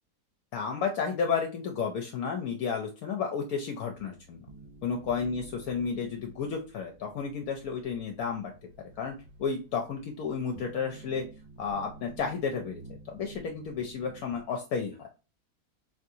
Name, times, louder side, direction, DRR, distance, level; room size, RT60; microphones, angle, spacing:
voice 1, 0.5-4.4 4.8-8.5 9.0-11.2 11.6-12.8 13.1-15.1, left 6 dB, 75° left, 2 dB, 1.0 m, -32 dB
sound 1, 3.9-14.4, right 2 dB, 80° right, 0.4 m, -51 dB
3.5 x 3.0 x 2.7 m, 0.31 s
omnidirectional pair, 1.6 m